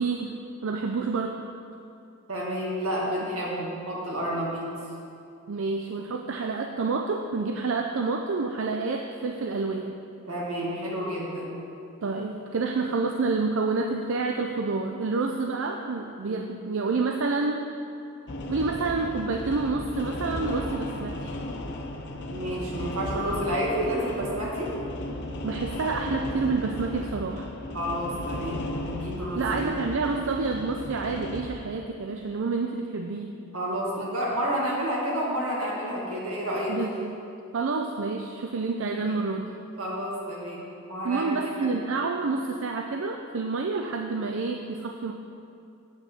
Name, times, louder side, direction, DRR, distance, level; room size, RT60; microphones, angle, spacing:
voice 1, 0.0-1.4 5.5-10.0 12.0-17.7 18.5-21.3 25.4-27.5 29.4-33.4 36.7-37.1 37.5-39.5 41.0-45.1, right 4 dB, 65° right, 3 dB, 0.5 m, -28 dB
voice 2, 2.3-4.7 10.3-11.6 16.3-16.4 22.3-24.8 27.7-29.8 33.5-36.8 38.9-39.2 39.8-41.2 41.6-41.7, equal, 85° right, -4 dB, 2.2 m, -30 dB
sound 1, 18.3-31.4, left 1 dB, 55° left, 0.8 m, -35 dB
8.4 x 5.3 x 7.4 m, 2.6 s
head